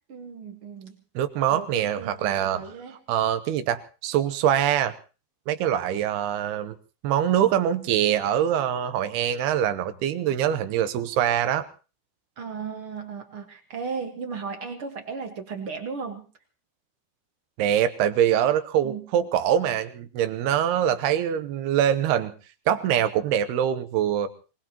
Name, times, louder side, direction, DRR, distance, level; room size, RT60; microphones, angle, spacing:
voice 1, 0.1-1.0 1.5-3.0 12.4-16.3 18.8-19.1, right 5 dB, 50° right, 4 dB, 1.7 m, -35 dB
voice 2, 1.2-2.7 3.1-5.0 5.5-6.7 7.0-11.7 17.6-22.3 22.7-24.3, right 10 dB, 85° right, 10 dB, 3.0 m, -24 dB
25.0 x 19.5 x 3.0 m, 0.35 s
omnidirectional pair, 4.5 m